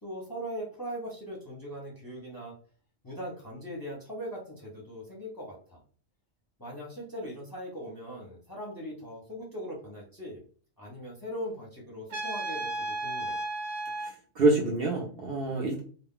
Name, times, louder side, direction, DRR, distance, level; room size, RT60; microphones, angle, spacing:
voice 1, 0.0-2.5 3.0-5.8 6.6-10.4 10.8-13.4, equal, 20° left, -4 dB, 0.6 m, -40 dB
Trumpet, 12.1-14.1, right 2 dB, 80° right, 0.9 m, -33 dB
voice 2, 14.0-15.8, right 2 dB, 60° right, 0 dB, 0.7 m, -26 dB
2.3 x 2.1 x 3.6 m, 0.43 s
omnidirectional pair, 1.3 m